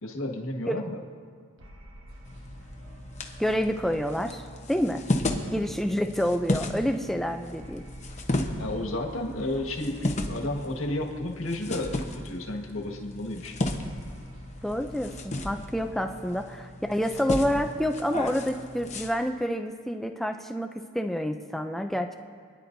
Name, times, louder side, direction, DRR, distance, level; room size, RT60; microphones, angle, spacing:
voice 1, 0.0-1.0 8.6-13.7, left 1 dB, 85° left, 2 dB, 1.7 m, -32 dB
sound 1, 1.6-6.2 7.6-12.0 13.6-18.1, equal, 80° right, 1.2 m, -50 dB
sound 2, 2.2-19.1, left 1 dB, 35° left, 1.0 m, -34 dB
voice 2, 3.4-4.4 4.7-5.0 5.5-7.8 14.6-22.1, equal, ahead, 5 dB, 0.4 m, -28 dB
28.5 x 10.0 x 2.7 m, 2.1 s
head